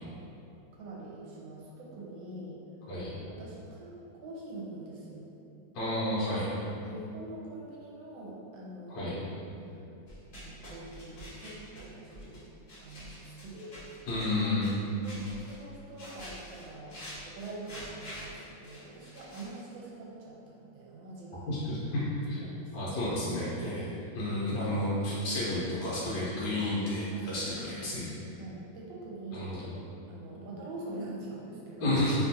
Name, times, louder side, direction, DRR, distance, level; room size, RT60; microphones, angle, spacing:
voice 1, 0.8-2.6 3.2-3.9 4.2-5.3 6.8-9.8 10.3-12.5 12.8-13.8 14.8-21.5 22.3-23.2 24.3-24.7 27.1-27.8 28.3-29.7 30.1-32.0, right 2 dB, 80° right, -4 dB, 1.3 m, -44 dB
voice 2, 5.7-6.5 8.9-9.2 14.1-14.7 21.5-21.6 21.9-22.4 22.7-23.9 24.1-28.1 29.3-29.6 31.8-32.1, left 1 dB, 70° left, -9 dB, 1.3 m, -31 dB
sound 1, 10.1-12.4 12.7-14.7 15.0-15.7 16.0-19.6, equal, 50° left, 1.1 m, -47 dB
3.3 x 2.3 x 2.6 m, 2.7 s
omnidirectional pair, 2.1 m